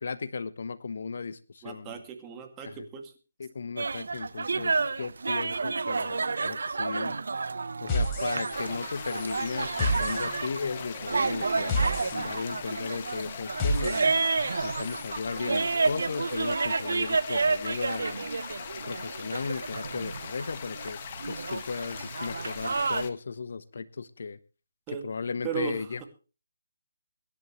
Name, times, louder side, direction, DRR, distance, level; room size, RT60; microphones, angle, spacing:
voice 1, 0.0-2.0 2.6-2.8 3.4-7.2 7.8-14.1 14.6-18.3 18.9-21.0 21.3-24.4 25.0-26.0, left 5 dB, 65° left, 1.1 m, -36 dB
voice 2, 1.6-3.1 24.9-25.0 25.4-26.1, right 8 dB, 20° right, 2.2 m, -36 dB
sound 1, 3.8-23.1, right 4 dB, 75° right, 1.0 m, -30 dB
sound 2, 7.9-8.8 9.1-15.1, left 1 dB, 20° left, 3.8 m, -32 dB
sound 3, 8.5-23.1, left 7 dB, 35° left, 1.5 m, -41 dB
24.0 x 11.0 x 3.1 m
figure-of-eight pair, 155°, 0 cm